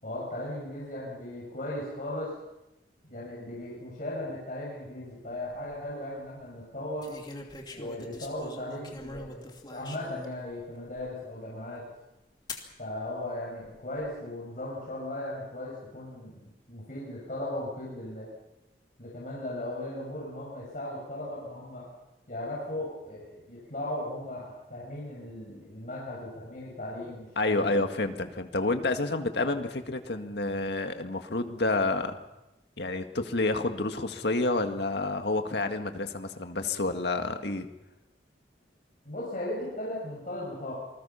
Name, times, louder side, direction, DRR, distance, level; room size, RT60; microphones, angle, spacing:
voice 1, 0.0-2.3 3.1-7.1 7.7-11.8 12.8-18.3 19.0-21.9 22.3-27.9 39.1-40.7, left 1 dB, 45° left, -6 dB, 6.9 m, -37 dB
sound 1, 5.3-5.8 7.0-10.4 11.0-11.1 12.5-12.7 13.6-14.1, left 2 dB, 25° left, 2.6 m, -43 dB
voice 2, 27.4-32.2 32.8-37.7, left 2 dB, 65° left, 6 dB, 1.9 m, -29 dB
27.5 x 20.5 x 5.8 m, 0.95 s
head